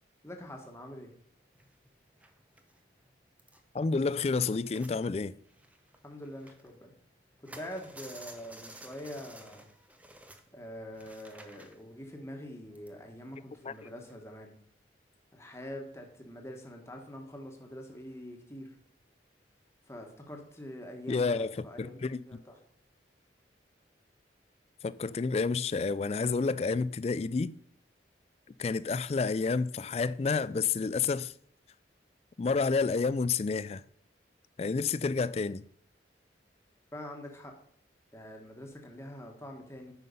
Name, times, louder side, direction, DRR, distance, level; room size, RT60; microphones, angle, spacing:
voice 1, 0.2-1.1 6.0-6.9 7.4-9.7 10.5-14.5 15.3-18.8 19.9-22.6 36.9-37.6 38.1-39.9, equal, 15° left, 1.5 m, -45 dB
sound 1, 1.5-5.0 5.3-7.0 7.3-14.3, right 1 dB, 10° right, 0.7 m, -53 dB
voice 2, 3.7-5.3 13.6-13.7 21.1-22.2 24.8-27.6 28.6-31.3 32.4-33.8 34.6-35.6, left 4 dB, 35° left, 0.3 m, -29 dB
9.3 x 5.8 x 5.4 m
head